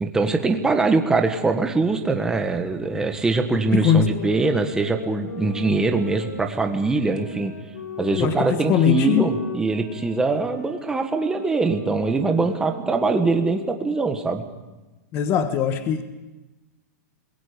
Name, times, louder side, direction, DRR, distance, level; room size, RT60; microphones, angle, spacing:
voice 1, 0.0-7.5 8.0-14.4, right 3 dB, 5° right, 5 dB, 1.5 m, -22 dB
voice 2, 3.7-4.1 8.1-9.3 15.1-16.0, left 8 dB, 25° left, 9 dB, 1.3 m, -21 dB
sound 1, 4.0-13.9, left 4 dB, 80° left, 6.2 m, -37 dB
29.0 x 21.5 x 5.2 m, 1.1 s
supercardioid pair, 165°, 9 cm